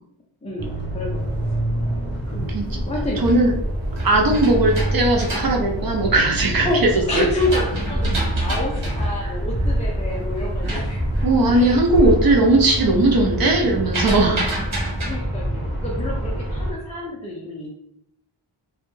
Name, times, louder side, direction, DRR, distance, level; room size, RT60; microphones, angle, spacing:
voice 1, 0.4-1.6 2.3-3.2 6.6-11.0 11.5-12.1 15.0-17.7, left 1 dB, 15° left, -4 dB, 0.4 m, -29 dB
sound 1, 0.6-16.7, equal, 20° right, 1.0 m, -26 dB
voice 2, 2.5-2.8 3.2-3.5 4.0-7.2 9.2-9.3 11.2-14.6, right 2 dB, 45° right, 0 dB, 0.6 m, -18 dB
sound 2, 2.7-6.6 7.1-11.9 12.2-12.7 12.9-15.1, right 1 dB, 75° right, 1.0 m, -29 dB
2.2 x 2.0 x 3.1 m, 0.77 s
wide cardioid pair, 85°, 50 cm